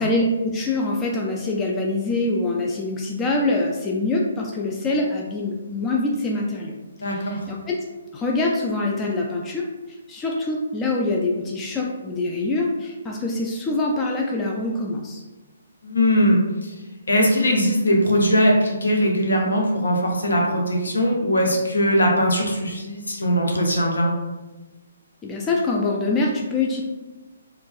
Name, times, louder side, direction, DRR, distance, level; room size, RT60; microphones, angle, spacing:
voice 1, 0.0-6.8 7.1-7.8 8.1-15.2 25.2-26.8, left 2 dB, 15° left, -1 dB, 0.3 m, -24 dB
voice 2, 7.0-7.4 15.8-16.7 17.1-24.1, equal, 65° left, 0 dB, 0.7 m, -20 dB
4.4 x 2.2 x 2.3 m, 1.2 s
figure-of-eight pair, 130°, 0 cm